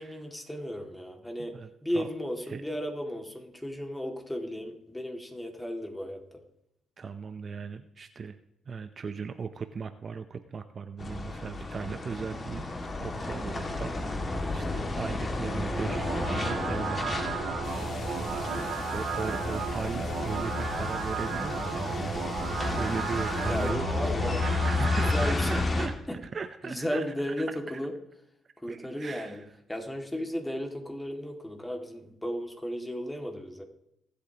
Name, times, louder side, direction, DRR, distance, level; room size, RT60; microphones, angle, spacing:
voice 1, 0.0-6.2 18.5-18.7 23.3-24.5 24.8-25.5 26.6-27.9 28.6-29.4 29.7-33.6, equal, 10° left, 3 dB, 2.2 m, -35 dB
voice 2, 7.0-8.4 8.7-12.6 13.0-17.6 18.5-27.6 28.7-29.4, right 5 dB, 40° right, 9 dB, 0.7 m, -38 dB
sound 1, 11.0-25.9, left 3 dB, 35° left, 2.1 m, -32 dB
sound 2, 15.6-25.6, right 6 dB, 75° right, 2.7 m, -35 dB
sound 3, 17.6-23.7, left 3 dB, 65° left, 3.3 m, -46 dB
25.0 x 8.5 x 2.9 m, 0.81 s
cardioid pair, 90°, 0 cm